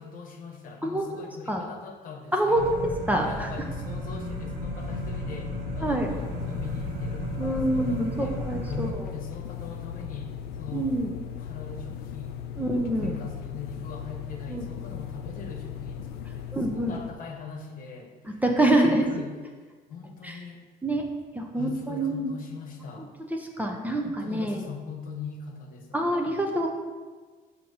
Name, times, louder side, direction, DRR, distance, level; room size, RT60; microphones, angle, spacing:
voice 1, 0.0-2.8 3.2-11.0 11.4-18.4 18.7-20.6 21.5-23.1 24.0-26.6, left 5 dB, 55° left, 3 dB, 1.0 m, -41 dB
voice 2, 0.8-1.2 1.5-1.7 2.3-3.5 5.8-6.1 7.4-8.9 10.7-11.1 12.6-13.1 14.5-14.6 16.5-16.9 18.2-19.0 20.2-20.3 20.8-21.0 21.3-22.3 23.6-24.6 25.9-26.7, right 1 dB, 10° right, 1 dB, 0.6 m, -26 dB
sound 1, 2.6-8.9, equal, 75° right, 1.0 m, -34 dB
sound 2, 4.8-17.2, left 8 dB, 75° left, 0.4 m, -38 dB
6.2 x 2.9 x 5.4 m, 1.4 s
cardioid pair, 110°, 17 cm